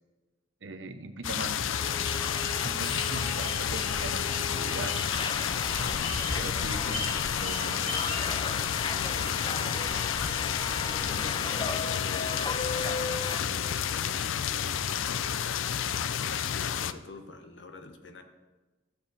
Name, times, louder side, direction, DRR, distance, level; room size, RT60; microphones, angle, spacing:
voice 1, 0.6-1.7 2.6-4.9 5.8-6.0 6.4-7.0 7.4-8.0, right 2 dB, 70° right, 8 dB, 0.8 m, -40 dB
sound 1, 1.2-16.9, left 8 dB, 90° left, 0.4 m, -31 dB
Subway metro underground, 1.7-13.4, left 4 dB, 25° left, 0.4 m, -35 dB
sound 2, 2.2-8.3, left 1 dB, 40° left, 2.8 m, -41 dB
voice 2, 8.5-10.0 10.9-12.4 13.0-14.2 14.5-15.9 16.2-18.2, left 3 dB, 65° left, 6 dB, 1.1 m, -46 dB
14.5 x 7.0 x 4.2 m, 1.2 s
head